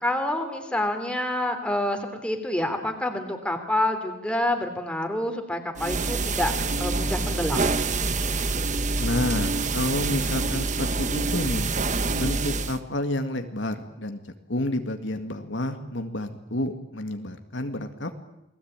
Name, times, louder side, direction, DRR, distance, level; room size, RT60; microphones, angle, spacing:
voice 1, 0.0-7.7, left 1 dB, 5° left, 5 dB, 3.3 m, -27 dB
sound 1, 5.8-12.8, right 3 dB, 40° right, 1.2 m, -26 dB
voice 2, 9.0-11.7 12.1-14.2 14.5-18.2, left 1 dB, 70° left, 6 dB, 2.1 m, -29 dB
29.0 x 20.5 x 8.9 m, 0.87 s
head